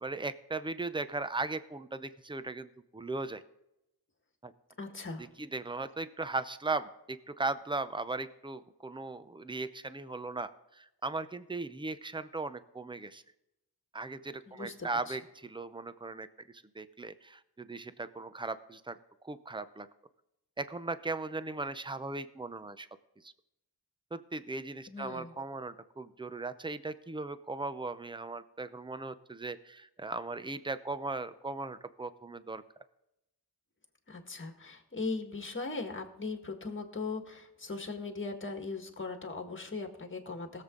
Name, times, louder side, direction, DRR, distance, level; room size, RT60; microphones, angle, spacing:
voice 1, 0.0-3.4 4.4-4.5 5.2-13.2 13.9-16.3 16.7-19.0 19.2-19.9 20.6-22.9 23.2-23.3 24.1-32.6, right 3 dB, 10° right, 13 dB, 0.6 m, -38 dB
voice 2, 4.8-5.3 14.5-15.2 24.9-25.3 34.1-40.6, left 3 dB, 30° left, 5 dB, 1.8 m, -39 dB
20.0 x 7.5 x 3.9 m, 0.88 s
wide cardioid pair, 105°, 39 cm